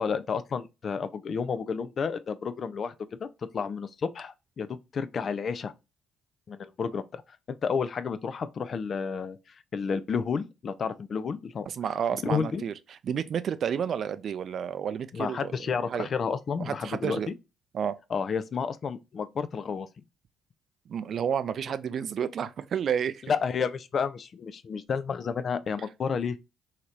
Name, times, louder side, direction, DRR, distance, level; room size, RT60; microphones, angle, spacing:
voice 1, 0.0-2.9 3.2-3.3 3.5-5.7 6.5-7.2 7.5-9.4 9.7-11.7 12.2-12.6 15.1-17.2 18.1-19.9 23.3-26.4, left 6 dB, 50° left, 0.4 m, -31 dB
voice 2, 11.7-12.7 13.0-15.5 15.9-16.1 16.6-17.3 17.7-18.0 20.9-23.2, right 8 dB, 55° right, 0.3 m, -30 dB
3.0 x 2.8 x 2.4 m
hypercardioid pair, 50°, 0 cm